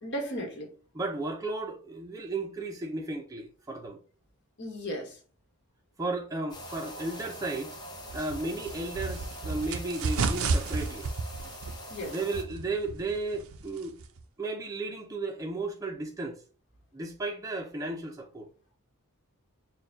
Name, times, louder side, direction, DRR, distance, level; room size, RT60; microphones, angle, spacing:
voice 1, 0.0-0.7 4.6-5.2 11.9-12.1, equal, 55° left, 1.5 m, -35 dB
voice 2, 0.9-4.0 6.0-7.8 8.1-11.1 12.1-14.0 14.4-16.4 16.9-18.5, right 2 dB, 15° right, 0.6 m, -34 dB
sound 1, 6.5-12.4, equal, 20° left, 0.8 m, -44 dB
sound 2, 8.1-14.2, right 4 dB, 70° right, 0.5 m, -33 dB
4.4 x 2.3 x 3.9 m
head